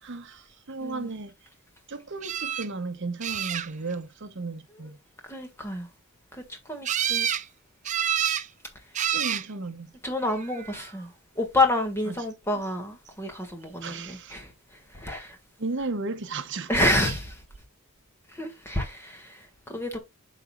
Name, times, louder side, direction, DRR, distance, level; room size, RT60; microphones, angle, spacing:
voice 1, 0.0-1.3 1.9-5.0 9.1-9.9 12.1-12.2 13.8-14.4 15.6-16.7, right 3 dB, 55° right, 0.8 m, -34 dB
voice 2, 0.8-1.1 5.3-5.9 6.3-7.3 10.0-14.5 14.9-15.4 16.7-17.4 18.3-20.0, left 1 dB, 10° left, 1.7 m, -29 dB
sound 1, 2.2-2.7 3.2-3.9 6.8-7.5 7.9-8.5 8.9-9.5 10.4-10.9 17.1-17.2 17.5-17.6, right 9 dB, 35° right, 0.5 m, -28 dB
11.5 x 4.0 x 2.3 m
head